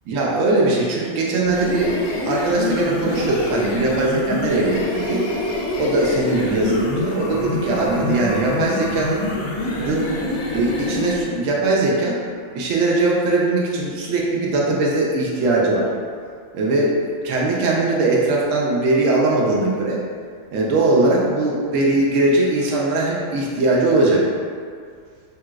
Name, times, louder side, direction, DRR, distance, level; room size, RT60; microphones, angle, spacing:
voice 1, 0.1-2.0 2.2-5.2 5.8-9.2 9.7-10.1 10.5-12.2 12.5-15.9 16.5-20.0 20.5-24.3, right 2 dB, 85° right, -3 dB, 0.9 m, -20 dB
sound 1, 1.4-11.2, left 2 dB, 75° left, 0.9 m, -26 dB
3.2 x 2.9 x 2.3 m, 2.1 s
omnidirectional pair, 1.3 m